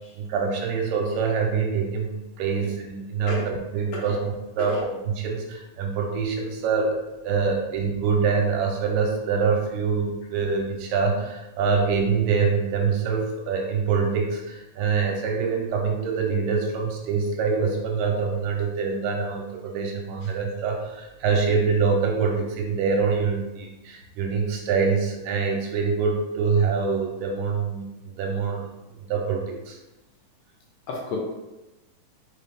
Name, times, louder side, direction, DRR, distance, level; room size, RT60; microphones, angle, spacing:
voice 1, 0.1-7.0 7.2-28.7 29.0-29.8, right 5 dB, 80° right, 1 dB, 2.2 m, -25 dB
voice 2, 2.6-2.7 3.3-3.5 3.9-4.2 4.6-4.8 30.9-31.2, left 3 dB, 75° left, -2 dB, 2.0 m, -31 dB
5.6 x 2.7 x 3.3 m, 1.0 s
omnidirectional pair, 4.0 m